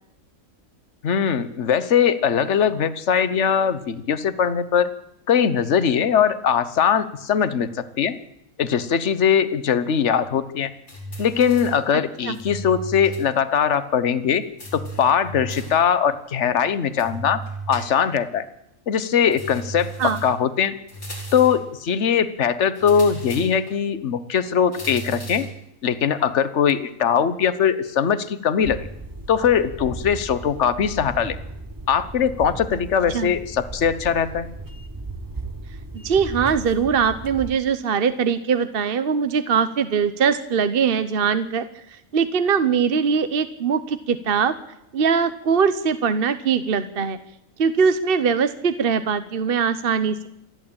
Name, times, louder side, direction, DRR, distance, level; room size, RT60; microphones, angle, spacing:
voice 1, 1.0-4.9 5.3-8.2 8.6-10.7 11.2-14.4 14.7-17.4 17.7-18.4 18.9-20.8 21.3-25.5 25.8-28.8 29.3-31.4 31.9-34.5, left 7 dB, 60° left, 14 dB, 1.4 m, -21 dB
sound 1, 10.9-11.9 12.3-13.3 13.6-13.7 14.6-15.9 17.0-18.2 19.3-20.4 20.9-21.7 22.7-23.8 24.7-25.6, right 3 dB, 85° left, 5.7 m, -35 dB
sound 2, 28.6-37.5, right 2 dB, 15° right, 1.1 m, -36 dB
voice 2, 35.9-44.6 44.9-47.2 47.6-50.3, right 6 dB, 45° right, 12 dB, 1.0 m, -21 dB
27.5 x 11.5 x 8.8 m, 0.83 s
omnidirectional pair, 1.4 m